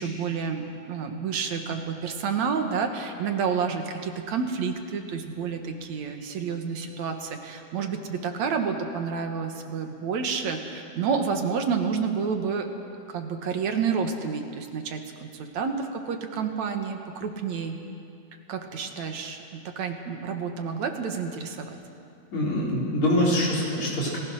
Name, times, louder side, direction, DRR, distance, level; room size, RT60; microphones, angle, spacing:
voice 1, 0.0-12.7 13.1-17.8 18.5-21.8, right 6 dB, 70° right, 5 dB, 2.7 m, -29 dB
voice 2, 22.3-24.2, left 1 dB, 70° left, -4 dB, 5.8 m, -24 dB
29.5 x 19.0 x 6.4 m, 2.5 s
omnidirectional pair, 3.4 m